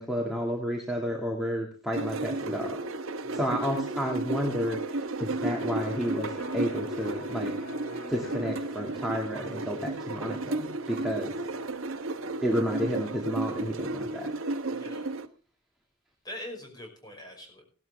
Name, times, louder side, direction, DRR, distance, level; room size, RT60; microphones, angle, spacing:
voice 1, 0.0-2.8 3.3-7.5 8.1-11.4 12.4-14.3, equal, ahead, -2 dB, 2.1 m, -31 dB
sound 1, 1.9-15.3, right 2 dB, 65° right, 1.2 m, -33 dB
Electric guitar, 5.7-13.4, equal, 55° left, 6.3 m, -47 dB
voice 2, 11.2-11.5 14.7-15.1 16.2-17.6, left 1 dB, 20° left, 1 dB, 5.6 m, -43 dB
18.0 x 12.0 x 3.5 m, 0.40 s
head